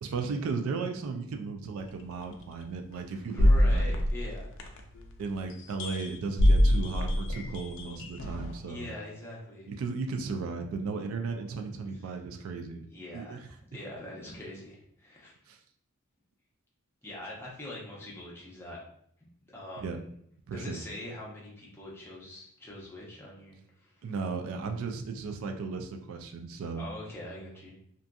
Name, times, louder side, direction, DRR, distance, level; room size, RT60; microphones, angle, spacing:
voice 1, 0.0-4.0 5.2-8.9 9.7-12.9 13.1-13.4 15.5-15.6 19.8-20.0 20.5-20.8 24.0-26.9, right 4 dB, 75° right, 4 dB, 0.3 m, -35 dB
sound 1, 2.2-2.3 3.4-5.0 5.8-6.1 6.4-8.6, left 1 dB, 60° left, 0.3 m, -24 dB
voice 2, 3.3-4.6 8.7-9.7 12.9-15.4 17.0-18.8 19.5-20.0 20.5-24.1 26.8-27.8, left 1 dB, 10° left, -5 dB, 0.6 m, -43 dB
2.5 x 2.5 x 2.2 m, 0.68 s
head